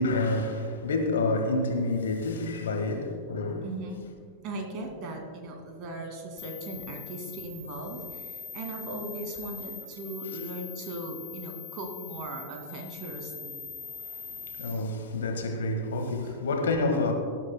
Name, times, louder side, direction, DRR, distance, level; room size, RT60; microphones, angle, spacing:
voice 1, 0.0-3.6 14.1-17.1, left 2 dB, 65° left, 1.5 m, -28 dB
voice 2, 3.6-4.1 4.4-13.6 16.2-16.4, right 2 dB, 40° right, 2.2 m, -38 dB
sound 1, 6.4-14.7, left 5 dB, 20° left, 1.4 m, -42 dB
19.5 x 12.0 x 2.2 m
figure-of-eight pair, 90°, 0 cm